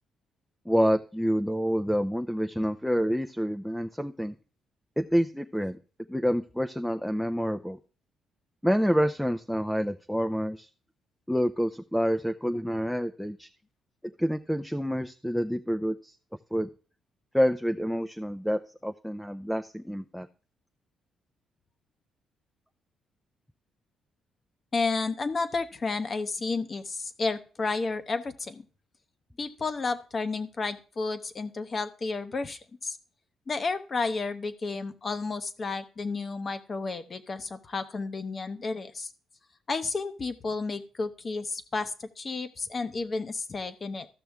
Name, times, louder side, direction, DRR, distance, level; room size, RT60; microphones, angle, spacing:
voice 1, 0.7-4.4 5.0-5.8 6.1-7.8 8.6-10.7 11.3-13.5 14.2-16.1 16.5-16.7 17.3-20.3, equal, ahead, 8 dB, 0.5 m, -28 dB
voice 2, 24.7-28.6 29.4-33.0 33.5-39.1 39.7-44.1, left 3 dB, 35° left, 10 dB, 0.8 m, -32 dB
13.5 x 6.1 x 3.5 m, 0.38 s
cardioid pair, 90°, 0 cm